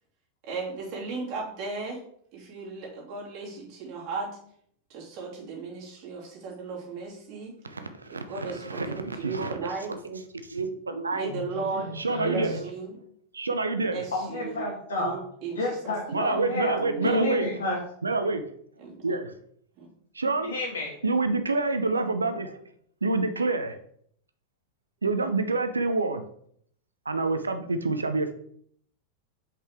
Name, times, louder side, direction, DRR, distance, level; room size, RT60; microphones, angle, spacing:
voice 1, 0.4-2.0 2.3-4.4 4.9-7.5 8.1-9.9 11.1-11.9 12.2-13.0 13.9-14.7 15.0-16.4 16.7-17.3 18.8-19.2 19.8-19.9, right 4 dB, 40° right, -5 dB, 2.6 m, -36 dB
voice 2, 8.6-11.3 12.0-12.6 13.3-14.0 16.1-17.4 18.0-18.5 19.0-19.4 20.1-20.5 21.0-22.6 23.0-23.8 25.0-26.2 27.1-28.3, right 3 dB, 75° right, 8 dB, 0.6 m, -27 dB
voice 3, 11.3-12.5 14.1-15.1 15.5-17.8 20.4-21.0, left 1 dB, 65° left, 0 dB, 1.6 m, -30 dB
5.4 x 5.1 x 3.5 m, 0.65 s
figure-of-eight pair, 90°, 0 cm